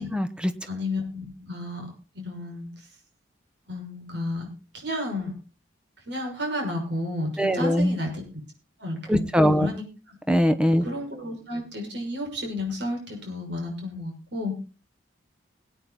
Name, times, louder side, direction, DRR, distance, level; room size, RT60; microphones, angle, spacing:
voice 1, 0.0-0.5 7.4-8.0 9.1-9.7 10.3-10.9, equal, 5° right, 10 dB, 0.9 m, -21 dB
voice 2, 0.7-1.9 2.1-2.9 3.7-4.5 4.7-5.3 6.1-8.2 8.8-10.2 10.8-14.5, left 1 dB, 60° right, 1 dB, 6.2 m, -32 dB
21.0 x 9.1 x 4.1 m, 0.34 s
head